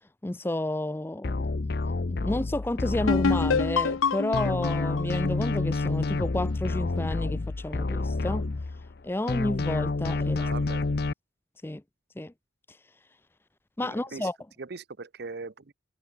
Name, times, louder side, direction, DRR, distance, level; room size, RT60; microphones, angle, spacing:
voice 1, 0.2-8.4 9.0-10.5 11.6-11.8 12.2-12.3 13.8-14.4, left 1 dB, 10° left, 0.4 m, -31 dB
sound 1, 1.2-4.0 4.3-9.0 9.3-11.1, left 3 dB, 50° left, 0.6 m, -29 dB
sound 2, 3.1-6.7, left 5 dB, 90° left, 0.6 m, -28 dB
voice 2, 10.4-10.9 13.8-14.3 14.6-15.7, right 4 dB, 55° right, 0.7 m, -40 dB
head